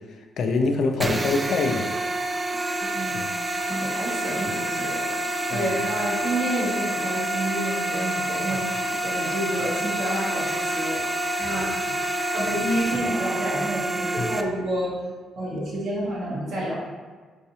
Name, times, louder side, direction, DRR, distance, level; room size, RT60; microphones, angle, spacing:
voice 1, 0.4-1.9 3.1-3.3 5.5-5.7 14.2-14.3, left 3 dB, 70° left, 4 dB, 0.4 m, -24 dB
sound 1, 1.0-14.4, right 1 dB, 25° right, 0.3 m, -27 dB
voice 2, 2.9-3.3 3.8-5.0 5.5-11.0 11.4-11.8 12.3-15.0 15.3-16.7, right 1 dB, 75° right, -6 dB, 1.3 m, -29 dB
3.5 x 3.3 x 2.7 m, 1.4 s
cardioid pair, 70°, 0 cm